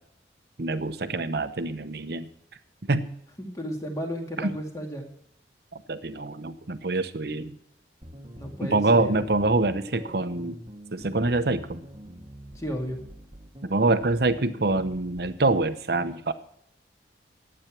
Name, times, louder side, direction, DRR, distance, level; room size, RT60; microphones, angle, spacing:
voice 1, 0.6-2.3 2.9-3.1 4.4-4.5 5.7-7.6 8.6-10.6 10.9-11.8 13.7-16.3, right 2 dB, 60° right, 11 dB, 0.9 m, -25 dB
voice 2, 3.4-5.1 8.4-9.1 12.5-13.0, equal, 20° left, 2 dB, 2.2 m, -33 dB
sound 1, 8.0-15.4, equal, 30° right, 1.2 m, -45 dB
12.0 x 8.9 x 5.9 m, 0.67 s
head